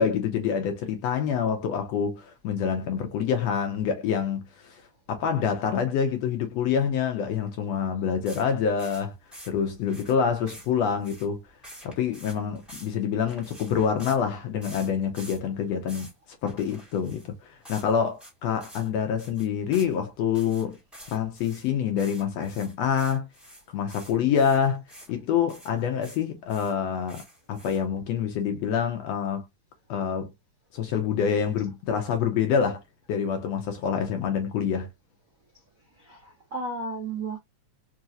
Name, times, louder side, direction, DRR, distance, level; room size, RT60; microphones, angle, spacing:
voice 1, 0.0-4.8 5.1-9.1 9.5-11.4 11.8-16.1 16.4-20.8 21.1-23.3 23.7-24.8 25.1-27.2 27.5-29.5 29.9-30.3 30.7-32.8 33.1-34.9, left 7 dB, 70° left, 1.8 m, -26 dB
sound 1, 8.2-14.2 14.6-15.4 15.7-16.1 16.5-17.3 17.6-17.9 18.2-18.3 18.6-18.9 19.2-19.9 20.3-25.1 25.5-26.2 26.5-28.0, equal, ahead, 1.3 m, -47 dB
voice 2, 36.0-37.4, right 3 dB, 60° right, 0.8 m, -34 dB
4.7 x 3.0 x 2.5 m
omnidirectional pair, 3.3 m